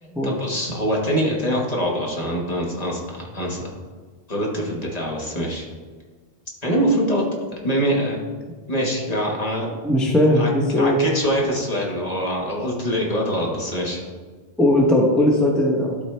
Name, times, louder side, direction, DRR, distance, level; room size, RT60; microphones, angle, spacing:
voice 1, 0.0-3.6 4.3-5.7 6.6-7.2 7.6-8.2 8.7-9.7 10.3-10.5 10.7-14.0, equal, 35° left, -3 dB, 1.4 m, -24 dB
voice 2, 9.8-11.0 14.6-16.0, left 1 dB, ahead, -2 dB, 0.7 m, -18 dB
12.0 x 4.1 x 3.3 m, 1.4 s
omnidirectional pair, 1.1 m